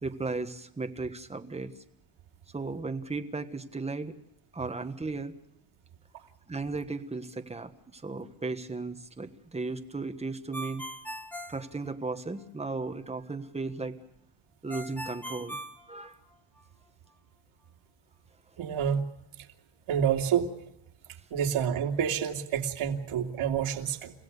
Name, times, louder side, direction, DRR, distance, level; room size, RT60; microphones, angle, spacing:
voice 1, 0.0-1.7 2.5-4.2 4.5-5.3 6.5-10.8 11.5-14.0 14.6-15.6 15.9-16.2, right 3 dB, 15° right, 7 dB, 1.4 m, -35 dB
Ringtone, 10.5-12.5 14.7-16.6, equal, 5° left, 1.5 m, -41 dB
voice 2, 18.6-19.0 19.9-20.5 21.3-24.1, right 8 dB, 85° right, 3 dB, 2.8 m, -28 dB
30.0 x 16.5 x 6.8 m, 0.84 s
cardioid pair, 165°, 49 cm